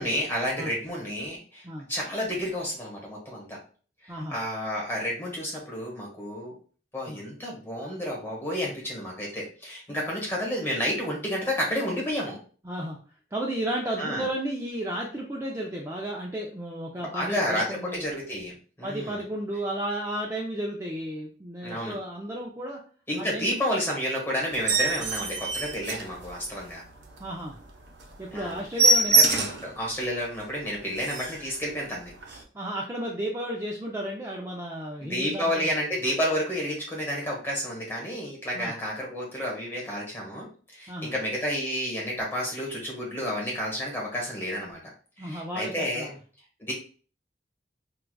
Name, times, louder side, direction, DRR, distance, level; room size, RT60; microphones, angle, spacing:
voice 1, 0.0-3.6 4.0-6.6 6.9-12.4 14.0-14.3 17.0-18.5 18.8-19.3 21.6-22.0 23.1-26.8 28.3-28.6 29.1-32.1 35.0-44.8 45.2-46.1 46.6-46.7, equal, 15° left, -2 dB, 1.1 m, -30 dB
voice 2, 12.6-13.0 13.3-18.0 18.8-22.8 23.2-23.5 27.2-27.6 28.2-29.2 32.5-35.7 38.5-38.7 40.9-41.1 45.2-46.2, right 1 dB, 15° right, -2 dB, 0.4 m, -33 dB
sound 1, 24.5-26.7 27.1-27.2 27.6-27.7 28.0-28.1 28.4-29.7 30.2-30.3 30.7-30.8 31.0-31.5 32.2-32.4, right 3 dB, 80° right, 0.6 m, -24 dB
4.7 x 2.3 x 2.2 m, 0.41 s
head